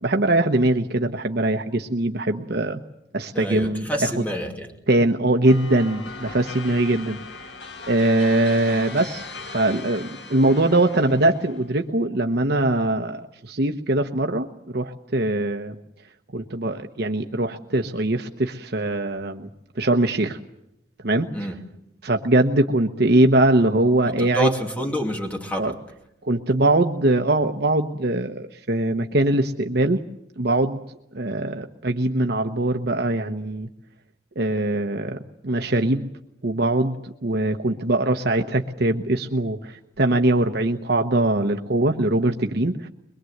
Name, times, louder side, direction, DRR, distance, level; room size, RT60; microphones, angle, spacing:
voice 1, 0.0-2.8 3.1-3.9 4.9-7.5 7.9-14.5 14.7-15.7 16.3-19.5 19.8-20.4 21.0-21.3 22.0-24.5 25.6-25.7 26.2-30.0 30.4-30.8 31.1-33.7 34.4-35.2 35.4-36.1 36.4-42.9, right 2 dB, 60° right, 5 dB, 1.0 m, -22 dB
voice 2, 3.3-4.7 21.3-21.6 24.2-25.7, right 1 dB, 10° left, 2 dB, 2.5 m, -27 dB
sound 1, 5.5-11.7, left 3 dB, 70° left, 1.7 m, -39 dB
22.5 x 22.5 x 8.0 m, 0.85 s
head